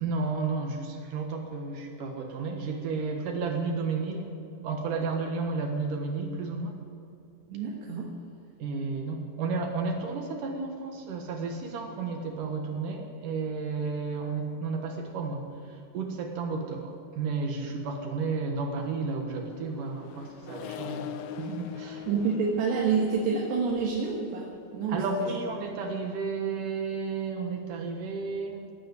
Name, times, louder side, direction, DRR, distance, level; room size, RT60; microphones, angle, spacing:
voice 1, 0.0-6.7 8.6-22.1 24.9-28.7, right 4 dB, 60° right, 3 dB, 2.5 m, -32 dB
voice 2, 7.5-8.1 22.1-25.3, right 5 dB, 80° right, -3 dB, 3.6 m, -28 dB
Accelerating revving vroom, 19.1-25.7, left 8 dB, 75° left, 2.5 m, -43 dB
18.0 x 8.8 x 9.1 m, 2.4 s
omnidirectional pair, 5.0 m